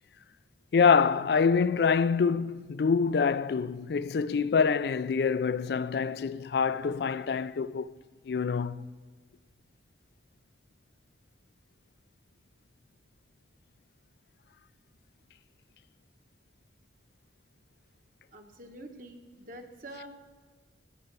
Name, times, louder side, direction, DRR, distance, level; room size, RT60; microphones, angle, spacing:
voice 1, 0.7-7.9 8.3-8.9, left 5 dB, 60° left, 0.3 m, -26 dB
voice 2, 18.3-20.1, right 1 dB, 45° right, 1.1 m, -46 dB
17.0 x 5.8 x 8.1 m
head